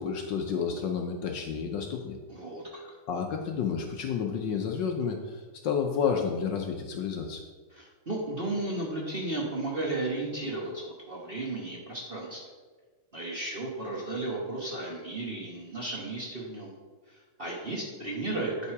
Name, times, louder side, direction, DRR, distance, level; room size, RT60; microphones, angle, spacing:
voice 1, 0.0-2.2 3.1-7.4, left 6 dB, 65° left, 3 dB, 1.3 m, -30 dB
voice 2, 2.3-3.0 7.7-12.4 13.1-16.7 17.1-18.7, right 2 dB, 30° right, -3 dB, 1.1 m, -34 dB
9.1 x 5.6 x 4.7 m, 1.4 s
omnidirectional pair, 2.4 m